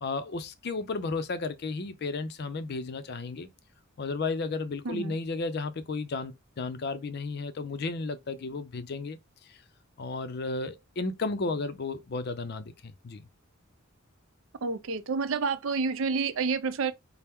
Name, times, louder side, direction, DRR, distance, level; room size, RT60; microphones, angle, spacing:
voice 1, 0.0-3.5 4.0-9.2 9.5-9.6 10.0-13.3, left 3 dB, 50° left, 0.5 m, -33 dB
voice 2, 4.8-5.2 14.6-16.9, right 4 dB, 70° right, 0.5 m, -29 dB
4.3 x 2.0 x 3.5 m
head